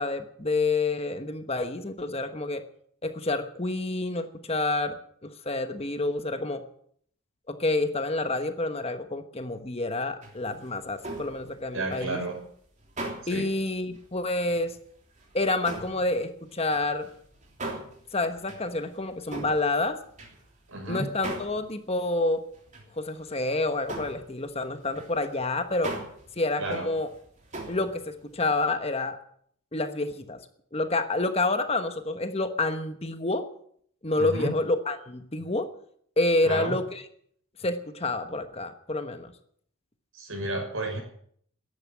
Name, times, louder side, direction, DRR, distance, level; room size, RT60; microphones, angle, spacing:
voice 1, 0.0-2.6 3.0-4.9 5.2-6.6 7.5-12.2 13.3-14.7 15.3-17.1 18.1-20.0 20.9-22.4 23.0-25.9 26.4-27.1 27.7-29.2 29.7-30.4 30.7-33.4 34.0-35.7 36.2-37.0 37.6-39.3, left 2 dB, 25° left, 8 dB, 1.1 m, -28 dB
sound 1, 10.2-13.5 13.9-14.1 14.5-14.8 15.1-20.8 21.2-21.7 22.0-22.1 22.5-22.9 23.2-23.5 23.7-28.6, right 2 dB, 35° right, 3.2 m, -40 dB
voice 2, 11.7-12.4 13.1-13.5 20.7-21.1 26.6-26.9 34.2-34.6 36.4-36.8 40.1-41.0, right 2 dB, 70° right, 3 dB, 6.1 m, -32 dB
14.5 x 11.0 x 8.9 m, 0.63 s
head